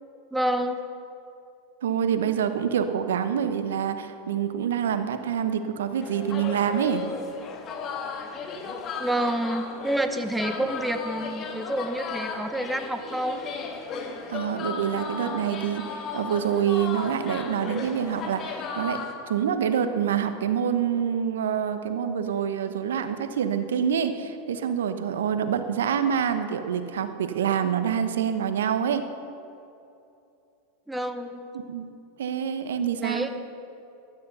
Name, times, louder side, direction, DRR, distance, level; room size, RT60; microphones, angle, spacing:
voice 1, 0.3-0.8 9.0-13.4 30.9-31.5 33.0-33.3, right 1 dB, 5° right, 8 dB, 1.2 m, -28 dB
voice 2, 1.8-7.0 14.3-29.1 31.5-31.9 32.2-33.3, right 8 dB, 75° right, 9 dB, 1.0 m, -26 dB
sound 1, 6.0-19.1, left 5 dB, 40° left, 1.8 m, -35 dB
15.5 x 12.5 x 5.6 m, 2.7 s
hypercardioid pair, 90°, 0 cm